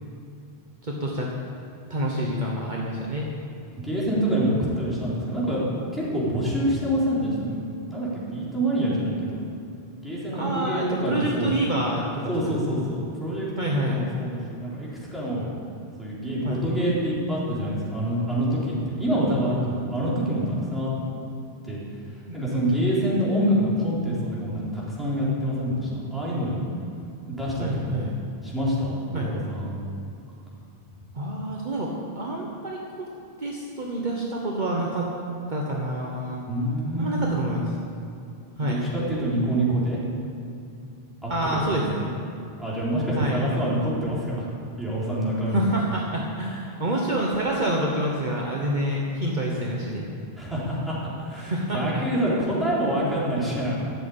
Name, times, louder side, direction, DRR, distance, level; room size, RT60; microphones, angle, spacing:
voice 1, 0.8-1.3 1.9-3.3 10.4-12.6 13.6-14.0 16.4-16.6 22.3-22.7 27.6-28.2 29.1-29.3 31.1-33.1 33.4-35.1 35.5-36.4 37.0-37.6 38.6-38.8 41.3-42.1 43.1-43.4 45.5-50.1 51.3-52.0, right 1 dB, 45° right, -2 dB, 1.3 m, -27 dB
voice 2, 3.8-5.6 5.9-7.6 7.9-9.4 10.0-11.6 12.3-15.5 16.0-20.9 21.6-21.8 22.3-26.6 27.4-28.1 28.4-29.7 36.5-37.2 38.6-40.0 41.2-41.9 42.6-44.5 44.8-45.6 50.4-53.8, equal, ahead, -8 dB, 4.0 m, -26 dB
13.0 x 7.8 x 8.7 m, 2.6 s
omnidirectional pair, 1.1 m